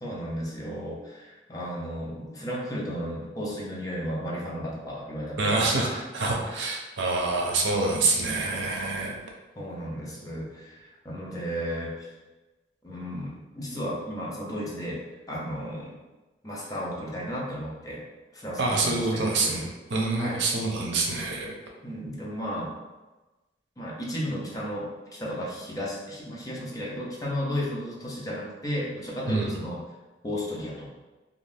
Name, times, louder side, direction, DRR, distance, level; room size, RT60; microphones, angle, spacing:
voice 1, 0.0-6.5 9.6-12.1 12.8-15.0 15.3-16.0 16.4-18.0 18.3-19.7 20.2-20.4 21.8-22.7 23.8-29.8 30.2-30.9, equal, 20° left, -4 dB, 0.6 m, -34 dB
voice 2, 5.4-9.1 18.6-21.5 29.3-29.6, right 3 dB, 80° right, 0 dB, 0.6 m, -26 dB
2.6 x 2.4 x 3.3 m, 1.1 s
head